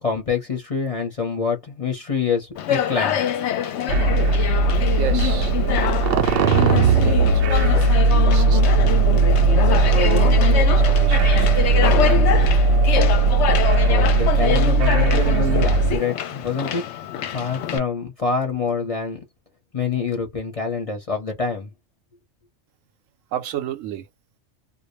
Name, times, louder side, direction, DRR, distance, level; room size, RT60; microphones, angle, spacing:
voice 1, 0.0-3.2 13.8-16.8 17.3-19.2 19.7-21.7, left 5 dB, 35° left, 0.7 m, -26 dB
Conversation, 2.6-17.8, left 10 dB, 70° left, 0.8 m, -25 dB
sound 1, 3.9-16.0, right 3 dB, 60° right, 0.6 m, -17 dB
voice 2, 4.8-5.8 6.1-8.9 9.5-12.5 23.3-24.1, right 10 dB, 80° right, 0.9 m, -33 dB
2.2 x 2.1 x 3.0 m
omnidirectional pair, 1.3 m